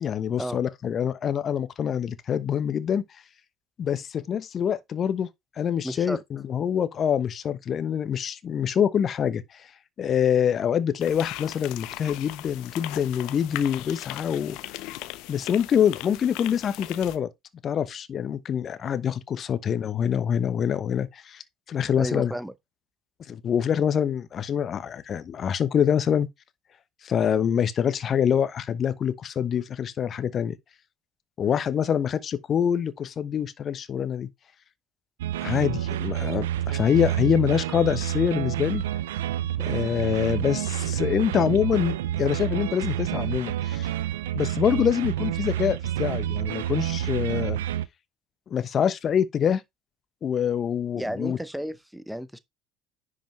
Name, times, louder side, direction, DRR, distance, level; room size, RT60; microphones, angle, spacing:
voice 1, 0.0-3.0 3.8-5.3 5.6-9.4 10.0-14.6 15.3-17.3 17.6-21.4 21.7-22.3 23.3-26.3 27.0-30.6 31.4-34.3 35.4-38.8 39.6-43.9 44.3-47.6 48.5-49.6 50.2-51.4, left 8 dB, 40° left, 1.1 m, -25 dB
voice 2, 5.8-6.2 22.0-22.5 51.0-52.4, equal, 5° right, 0.8 m, -32 dB
sound 1, 11.0-17.2, left 17 dB, 60° left, 0.7 m, -38 dB
sound 2, 35.2-47.9, right 12 dB, 75° right, 0.5 m, -28 dB
10.5 x 5.0 x 3.2 m
figure-of-eight pair, 65°, 0 cm